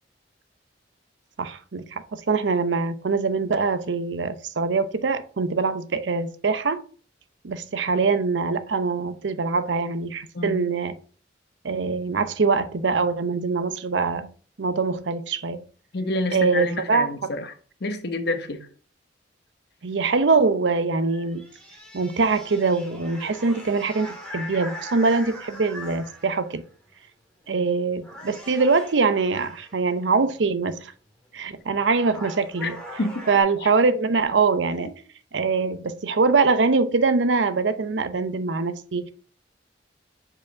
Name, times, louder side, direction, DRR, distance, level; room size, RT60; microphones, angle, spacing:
voice 1, 1.4-6.8 7.4-11.0 11.6-14.3 14.6-15.6 16.3-17.1 19.8-21.4 21.9-26.6 27.5-30.9 31.3-32.8 33.3-34.9 35.3-39.1, right 4 dB, 80° right, 0.6 m, -23 dB
voice 2, 10.3-10.7 15.9-17.5 17.8-18.7 32.6-32.7 33.0-33.2 33.6-33.7 34.8-34.9, left 2 dB, 65° left, 0.9 m, -28 dB
sound 1, 21.0-26.6 27.4-27.7 28.0-29.9 31.3-31.4 31.7-33.4, left 1 dB, 5° left, 2.3 m, -41 dB
4.9 x 4.9 x 4.5 m
head